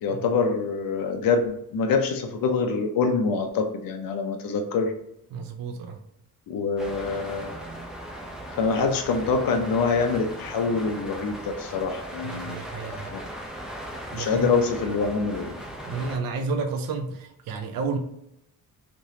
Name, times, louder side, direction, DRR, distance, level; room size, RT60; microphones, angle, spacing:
voice 1, 0.0-4.9 6.5-7.5 8.6-13.2 14.1-15.5, left 4 dB, 70° left, 4 dB, 0.6 m, -25 dB
voice 2, 5.3-6.0 12.2-13.1 14.1-14.5 15.9-18.0, right 4 dB, 70° right, 5 dB, 0.5 m, -31 dB
sound 1, 6.8-16.2, right 1 dB, ahead, 0.6 m, -38 dB
3.3 x 2.9 x 2.7 m, 0.82 s
wide cardioid pair, 140°, 37 cm